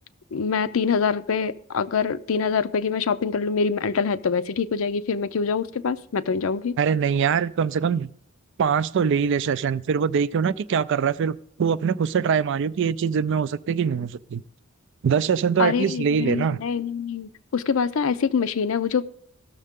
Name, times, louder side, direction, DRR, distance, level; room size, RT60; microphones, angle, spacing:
voice 1, 0.3-6.8 15.6-19.0, left 5 dB, 70° left, 0.5 m, -25 dB
voice 2, 6.8-8.1 8.6-14.4 15.0-16.6, right 6 dB, 60° right, 0.4 m, -23 dB
17.5 x 6.6 x 3.6 m
head